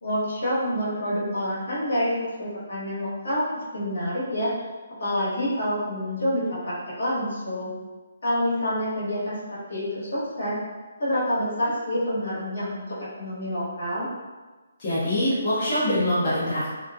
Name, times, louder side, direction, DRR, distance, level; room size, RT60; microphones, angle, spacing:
voice 1, 0.0-4.5 5.0-7.7 8.2-10.6 11.0-14.1, equal, 85° left, -7 dB, 1.2 m, -27 dB
voice 2, 14.8-16.7, left 1 dB, 30° left, -11 dB, 0.8 m, -24 dB
2.7 x 2.3 x 2.3 m, 1.3 s
hypercardioid pair, 170°, 0 cm